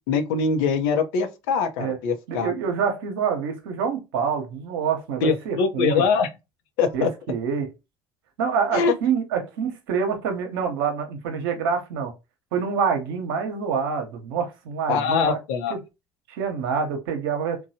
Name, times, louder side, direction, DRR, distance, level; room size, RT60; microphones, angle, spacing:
voice 1, 0.0-2.5 5.2-6.3 6.8-7.1 8.7-8.9 14.9-15.7, left 5 dB, 80° left, 0.6 m, -23 dB
voice 2, 2.3-6.0 6.9-7.7 8.4-12.1 12.5-15.4 15.7-15.8 16.3-17.6, right 6 dB, 80° right, 0.8 m, -26 dB
3.0 x 2.2 x 2.7 m
hypercardioid pair, 65°, 12 cm